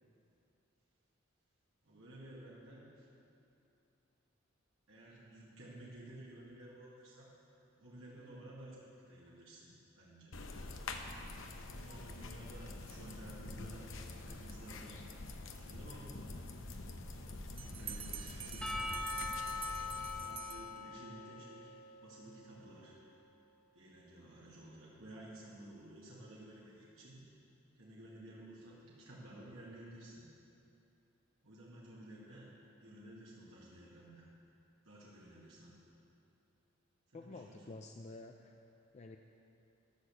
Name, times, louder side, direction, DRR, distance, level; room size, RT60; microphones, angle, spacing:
voice 1, 1.8-3.1 4.9-7.3 7.8-9.7 10.0-10.4 11.6-13.9 14.1-15.1 15.6-16.5 17.0-18.9 20.1-23.0 23.7-27.2 27.7-30.3 31.4-32.5 32.8-34.3 34.8-35.7 37.1-37.7, right 1 dB, 75° right, -7 dB, 2.0 m, -53 dB
sound 1, 10.3-20.3, left 2 dB, 70° left, 0.8 m, -46 dB
Bell, 17.6-21.2, right 10 dB, 30° right, 0.4 m, -48 dB
Percussion / Church bell, 18.6-22.9, left 3 dB, 5° left, 1.0 m, -43 dB
voice 2, 37.1-38.6 38.9-39.2, left 2 dB, 35° left, 4 dB, 0.4 m, -50 dB
13.0 x 6.7 x 6.8 m, 2.7 s
head